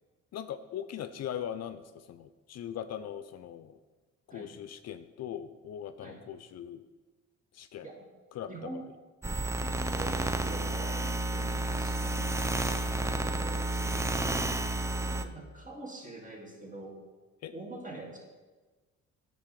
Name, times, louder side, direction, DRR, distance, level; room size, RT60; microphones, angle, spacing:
voice 1, 0.3-3.8 4.3-6.9 7.5-7.9 8.3-8.8 12.1-12.5 17.4-17.5, left 9 dB, 60° left, 11 dB, 0.5 m, -40 dB
voice 2, 8.5-8.8 9.6-12.2 13.1-17.0 17.5-18.2, right 2 dB, 25° right, -1 dB, 2.0 m, -45 dB
Electromagnetic Waves, 9.2-15.3, right 2 dB, 10° right, 0.4 m, -31 dB
9.5 x 3.4 x 6.7 m, 1.3 s
cardioid pair, 90°, 30 cm